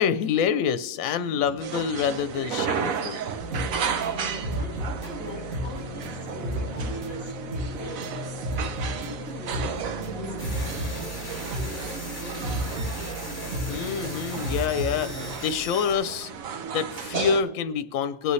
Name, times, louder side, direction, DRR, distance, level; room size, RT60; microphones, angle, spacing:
voice 1, 0.0-3.2 13.7-15.1 15.4-16.3 16.7-18.3, left 7 dB, 80° left, 1.0 m, -26 dB
voice 2, 1.2-1.5 4.1-8.4 8.7-11.1 11.5-13.1, left 1 dB, 15° right, 4.2 m, -42 dB
sound 1, 1.6-17.4, right 7 dB, 90° right, 1.2 m, -34 dB
sound 2, 3.4-15.3, equal, 60° right, 1.6 m, -33 dB
sound 3, 10.4-16.0, left 2 dB, 35° left, 2.5 m, -40 dB
19.5 x 8.2 x 3.2 m
omnidirectional pair, 1.4 m